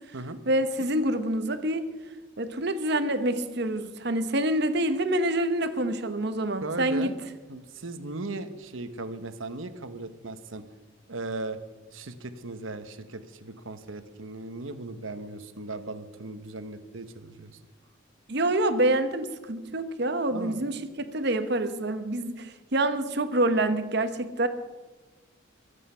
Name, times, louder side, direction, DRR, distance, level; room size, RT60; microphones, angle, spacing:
voice 1, 0.5-1.8 2.4-7.1 18.3-24.5, right 1 dB, 55° right, 10 dB, 1.1 m, -26 dB
voice 2, 6.6-7.1 7.5-10.6 11.1-11.6 11.9-17.6 20.3-20.6, right 2 dB, 85° right, 11 dB, 1.2 m, -37 dB
23.0 x 8.4 x 5.7 m, 1.2 s
head